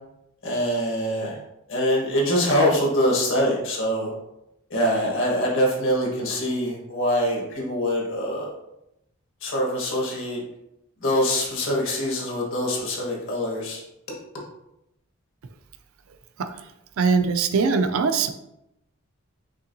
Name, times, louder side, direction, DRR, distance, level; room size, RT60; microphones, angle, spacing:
voice 1, 0.4-1.4 1.7-4.1 4.7-8.5 9.4-10.4 11.0-13.8, equal, 60° left, -2 dB, 1.4 m, -24 dB
voice 2, 17.0-18.3, right 5 dB, 70° right, 9 dB, 0.4 m, -21 dB
5.4 x 3.6 x 2.7 m, 0.85 s
head